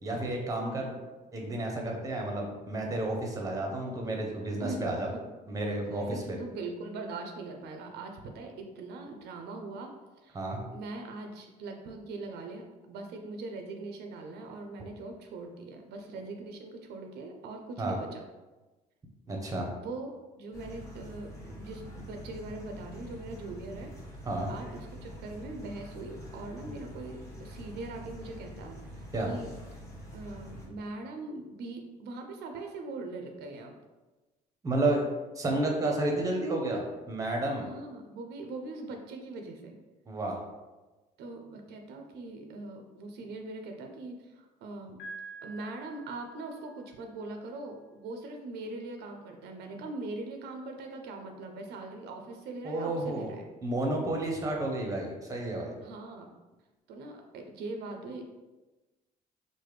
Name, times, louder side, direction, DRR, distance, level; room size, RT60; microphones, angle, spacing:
voice 1, 0.0-0.9 1.3-5.1 5.5-6.4 10.3-10.6 17.8-18.0 19.3-19.7 24.3-24.5 29.1-29.3 34.6-35.0 35.4-37.7 40.1-40.4 52.6-53.3 53.6-55.8, right 2 dB, 20° right, 1 dB, 0.6 m, -31 dB
voice 2, 4.6-5.2 5.9-9.9 10.2-10.4 10.7-18.2 19.8-20.1 20.4-23.9 24.5-29.5 30.1-33.8 37.6-39.8 41.2-45.0 45.4-53.4 55.8-56.4 56.9-58.4, right 2 dB, 75° right, 3 dB, 0.4 m, -41 dB
sound 1, 20.5-30.7, equal, 15° left, 0.8 m, -45 dB
Piano, 45.0-46.9, right 3 dB, 75° left, 0.8 m, -46 dB
3.2 x 2.1 x 3.2 m, 1.1 s
cardioid pair, 110°, 17 cm